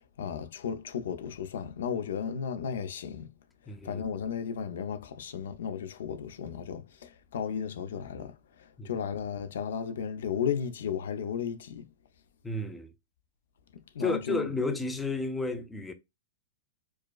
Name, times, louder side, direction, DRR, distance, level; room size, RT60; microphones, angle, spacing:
voice 1, 0.2-3.3 3.8-11.9 13.9-14.5, left 7 dB, 80° left, 0.5 m, -34 dB
voice 2, 3.7-4.0 8.8-8.9 12.4-12.9 14.0-15.9, left 2 dB, 5° left, 0.4 m, -32 dB
4.7 x 2.1 x 2.3 m
supercardioid pair, 160°, 0 cm